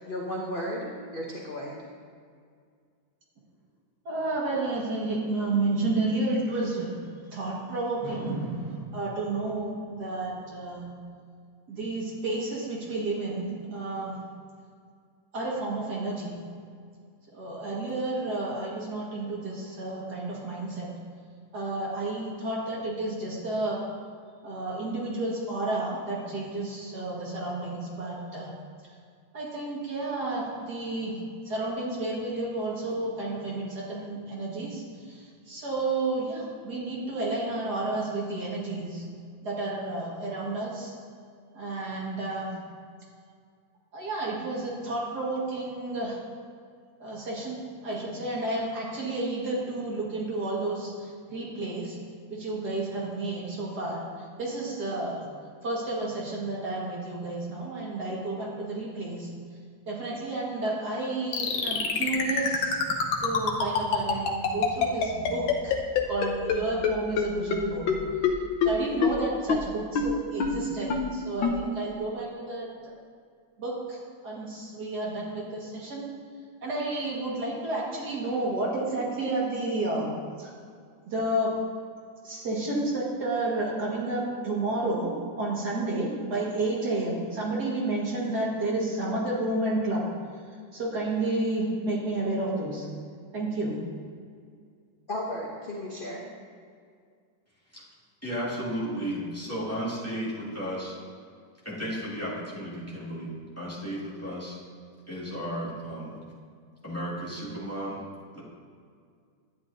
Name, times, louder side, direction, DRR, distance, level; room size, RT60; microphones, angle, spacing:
voice 1, 0.1-1.7 95.1-96.3, equal, 40° left, -2 dB, 0.8 m, -34 dB
voice 2, 4.1-7.0 7.3-10.9 11.7-14.2 15.3-16.4 17.3-20.9 21.5-23.8 24.4-28.5 29.3-31.2 31.5-39.0 39.4-40.9 41.5-42.6 43.9-46.2 47.0-52.0 52.3-54.0 54.4-55.3 55.6-59.3 59.9-62.8 63.2-65.7 66.1-67.9 68.6-72.7 73.6-76.1 76.6-80.1 80.4-80.5 81.1-81.5 82.2-90.1 90.7-92.9 93.3-93.8, right 2 dB, 55° right, -5 dB, 2.3 m, -31 dB
sound 1, 61.3-66.6 66.8-66.9 67.2-67.3 67.5-67.6 67.9-68.0 68.2-68.3 68.6-68.7 69.0-69.1 69.5-69.6 70.0-70.1 70.4-70.5 70.9-71.0 71.4-71.5, left 7 dB, 80° left, 1.6 m, -23 dB
voice 3, 98.2-100.9 101.6-104.6 105.1-106.2 106.8-108.0 108.3-108.4, equal, 10° left, -8 dB, 2.0 m, -34 dB
12.0 x 9.4 x 2.7 m, 2.2 s
omnidirectional pair, 2.1 m